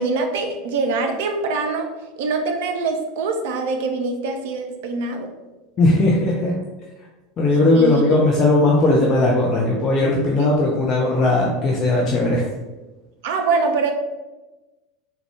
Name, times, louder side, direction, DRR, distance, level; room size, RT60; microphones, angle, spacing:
voice 1, 0.0-1.9 2.2-5.3 7.7-8.0 10.4-10.8 13.2-13.9, right 4 dB, 55° right, 4 dB, 0.4 m, -24 dB
voice 2, 5.8-6.5 7.4-12.4, left 2 dB, 30° left, -2 dB, 0.5 m, -18 dB
3.6 x 2.3 x 3.4 m, 1.1 s
figure-of-eight pair, 80°, 0 cm